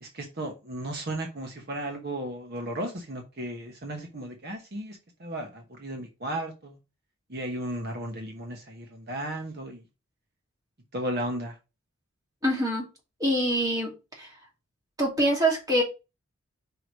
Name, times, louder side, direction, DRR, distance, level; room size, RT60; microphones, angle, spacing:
voice 1, 0.0-6.8 7.3-9.8 10.9-11.6, right 1 dB, 45° right, 3 dB, 1.1 m, -35 dB
voice 2, 12.4-12.8 13.2-13.9 14.2-14.3 15.0-15.8, right 1 dB, 15° right, -2 dB, 2.5 m, -24 dB
4.9 x 4.9 x 5.1 m, 0.28 s
head